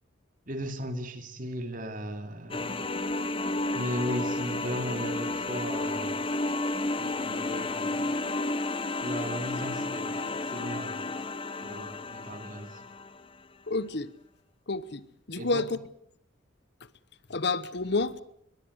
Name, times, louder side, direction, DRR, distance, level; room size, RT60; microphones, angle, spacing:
voice 1, 0.5-2.8 3.7-6.4 7.0-8.1 9.0-11.1 11.6-12.8 15.4-15.7, equal, 45° right, 2.6 m, -36 dB
sound 1, 2.5-13.3, left 2 dB, 25° left, 1.0 m, -32 dB
voice 2, 13.7-14.1 14.7-15.6 17.3-18.1, left 3 dB, 55° left, 1.0 m, -29 dB
22.0 x 21.5 x 8.1 m
head